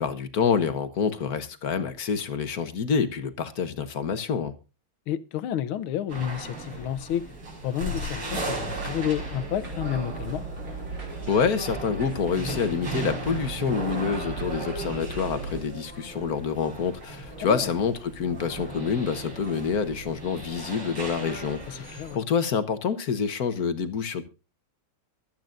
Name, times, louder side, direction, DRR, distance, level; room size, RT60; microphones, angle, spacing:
voice 1, 0.0-4.5 11.3-24.2, left 6 dB, 50° left, 1.5 m, -27 dB
voice 2, 5.1-7.3 7.6-10.4 17.4-17.7 21.7-22.2, left 11 dB, 80° left, 1.7 m, -30 dB
sound 1, 6.1-22.2, right 2 dB, 90° right, 6.0 m, -37 dB
sound 2, 8.2-15.6, right 3 dB, 60° right, 3.9 m, -37 dB
24.0 x 9.1 x 2.6 m
omnidirectional pair, 2.3 m